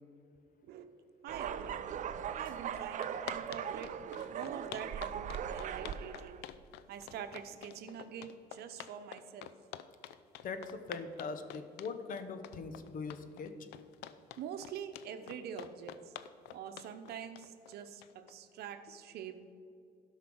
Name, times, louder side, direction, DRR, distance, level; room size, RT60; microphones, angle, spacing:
voice 1, 1.2-1.8 2.4-3.9 4.3-6.4 6.9-9.5 14.4-15.9 16.5-19.4, right 8 dB, 70° right, 8 dB, 0.9 m, -45 dB
sound 1, 1.3-6.4, right 8 dB, 50° right, 0.5 m, -39 dB
sound 2, 2.4-2.5 2.7-18.3, left 12 dB, 85° left, 0.5 m, -48 dB
voice 2, 10.4-13.5, left 4 dB, 55° left, 9 dB, 1.0 m, -41 dB
12.0 x 5.7 x 6.2 m, 2.5 s
cardioid pair, 110°, 17 cm